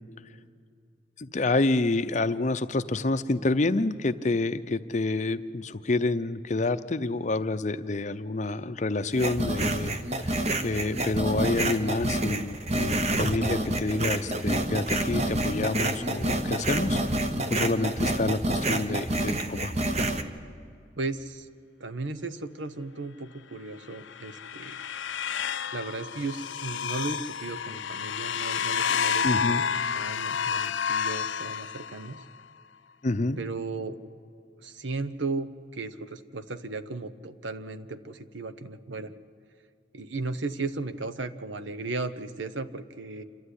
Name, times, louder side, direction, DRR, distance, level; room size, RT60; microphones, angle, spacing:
voice 1, 1.2-10.4 10.6-17.0 17.5-19.7 29.2-29.6 33.0-33.4, left 2 dB, 40° left, 11 dB, 0.6 m, -28 dB
sound 1, 9.1-20.2, right 1 dB, 35° right, 1.0 m, -28 dB
voice 2, 21.0-21.5 21.8-24.8 25.7-32.2 33.4-34.0 34.6-39.1 39.9-43.2, right 3 dB, 75° right, 12 dB, 1.0 m, -35 dB
sound 2, 23.9-32.2, left 7 dB, 85° left, 0.6 m, -30 dB
27.5 x 12.5 x 9.8 m, 2.3 s
head